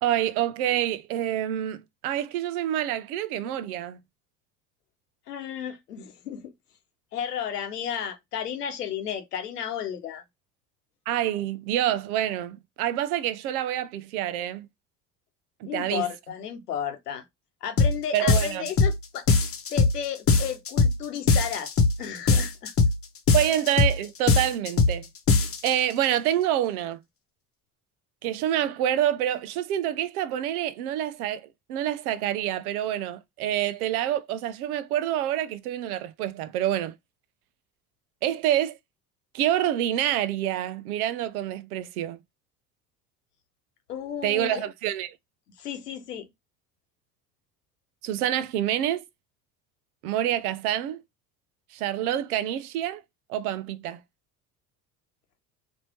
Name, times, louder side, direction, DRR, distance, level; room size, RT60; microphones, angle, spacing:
voice 1, 0.0-4.0 11.1-14.7 15.6-16.1 18.1-18.7 23.3-25.1 25.6-27.0 28.2-36.9 38.2-38.8 39.3-42.2 44.2-45.2 48.0-49.0 50.0-51.0 51.7-53.0 53.3-54.0, right 12 dB, 65° right, 0.7 m, -27 dB
voice 2, 5.3-6.5 7.1-10.2 15.6-17.2 17.6-21.7 22.0-22.7 43.9-44.6 45.6-46.3, left 8 dB, 85° left, 0.9 m, -33 dB
sound 1, 17.8-18.0 18.3-19.0 19.3-20.0 20.3-21.0 21.3-22.0 22.3-23.0 23.3-24.0 24.3-25.0 25.3-25.7, left 3 dB, 30° left, 0.9 m, -20 dB
4.1 x 2.7 x 3.0 m
figure-of-eight pair, 65°, 46 cm